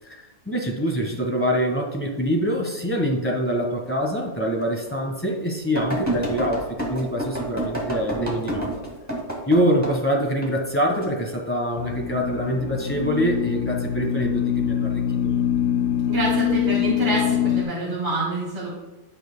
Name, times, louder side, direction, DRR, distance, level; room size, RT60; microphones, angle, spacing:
voice 1, 0.0-8.7 9.5-15.4, equal, 10° left, 0 dB, 1.2 m, -25 dB
sound 1, 4.2-4.3 4.9-5.0 5.8-10.0 10.4-11.1 11.7-12.0, right 1 dB, 10° right, 1.7 m, -28 dB
sound 2, 11.8-17.6, left 10 dB, 65° left, 1.0 m, -24 dB
voice 2, 16.1-18.7, right 2 dB, 30° right, -5 dB, 2.1 m, -26 dB
15.5 x 6.0 x 2.2 m, 1.1 s
omnidirectional pair, 1.7 m